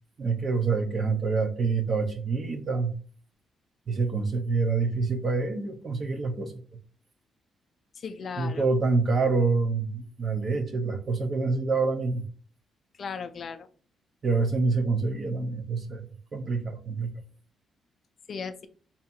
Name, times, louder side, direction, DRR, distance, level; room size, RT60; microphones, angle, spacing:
voice 1, 0.2-2.9 3.9-6.5 8.4-12.2 14.2-17.2, right 4 dB, 35° right, 7 dB, 0.6 m, -26 dB
voice 2, 7.9-8.7 13.0-13.7 18.3-18.7, left 5 dB, 40° left, 10 dB, 0.4 m, -36 dB
3.5 x 2.8 x 4.2 m, 0.40 s
cardioid pair, 170°, 0 cm